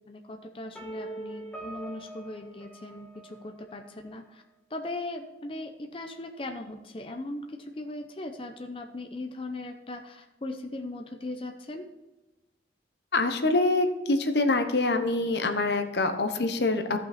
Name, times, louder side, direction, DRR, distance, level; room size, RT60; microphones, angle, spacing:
voice 1, 0.1-4.4 4.7-11.9, left 2 dB, 30° left, 4 dB, 0.6 m, -38 dB
sound 1, 0.7-3.7, right 2 dB, 5° left, 2.0 m, -43 dB
voice 2, 13.1-17.0, left 2 dB, 70° left, 7 dB, 0.9 m, -25 dB
14.5 x 5.7 x 4.2 m, 1.1 s
head